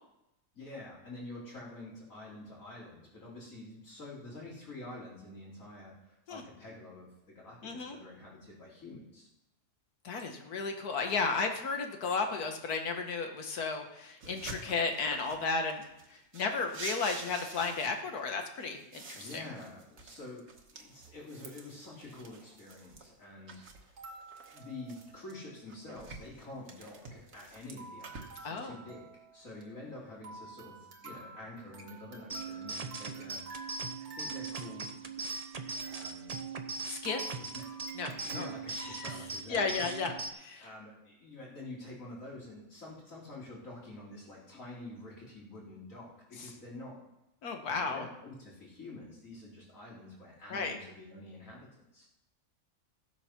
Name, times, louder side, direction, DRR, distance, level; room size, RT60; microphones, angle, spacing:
voice 1, 0.5-9.3 19.1-23.9 24.5-29.1 29.3-33.4 34.0-35.0 35.9-36.4 37.4-37.7 38.1-39.8 40.6-47.0 47.6-52.1, left 2 dB, 60° left, -5 dB, 4.0 m, -47 dB
voice 2, 7.6-8.0 10.1-19.4 28.4-28.8 36.9-37.2 38.0-38.5 38.7-39.2 39.5-40.6 47.4-48.1 50.5-50.8, left 4 dB, 85° left, 5 dB, 1.8 m, -34 dB
sound 1, 14.2-15.5 15.8-18.2 18.5-23.1 23.5-25.3 25.7-28.6, right 3 dB, 60° right, 1.7 m, -48 dB
sound 2, 23.8-25.4 25.7-25.8 26.0-26.2 26.7-27.5 27.8-39.2, right 3 dB, 80° right, 2.2 m, -51 dB
sound 3, 32.3-40.3, right 4 dB, 35° right, 0.7 m, -40 dB
15.5 x 8.0 x 5.9 m, 0.90 s
omnidirectional pair, 1.6 m